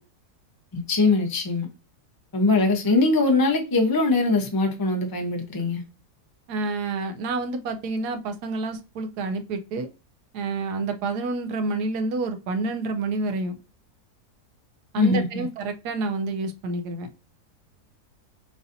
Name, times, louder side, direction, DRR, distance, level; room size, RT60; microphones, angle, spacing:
voice 1, 0.7-1.7 2.3-5.8 15.0-15.5, left 3 dB, 35° left, 0.3 m, -22 dB
voice 2, 6.5-9.9 10.3-13.6 14.9-17.1, right 3 dB, 90° right, 1.2 m, -28 dB
6.8 x 2.7 x 2.6 m
omnidirectional pair, 1.7 m